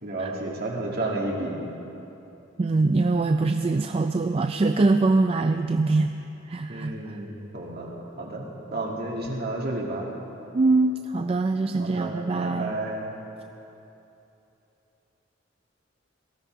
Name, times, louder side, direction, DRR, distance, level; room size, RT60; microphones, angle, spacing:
voice 1, 0.0-1.6 6.7-7.9 8.2-8.4 8.7-10.1 11.8-13.1, right 2 dB, 55° right, -2 dB, 2.2 m, -31 dB
voice 2, 2.6-6.1 6.5-7.2 10.5-12.8, right 3 dB, 30° right, 7 dB, 0.3 m, -23 dB
18.0 x 13.5 x 4.6 m, 3.0 s
head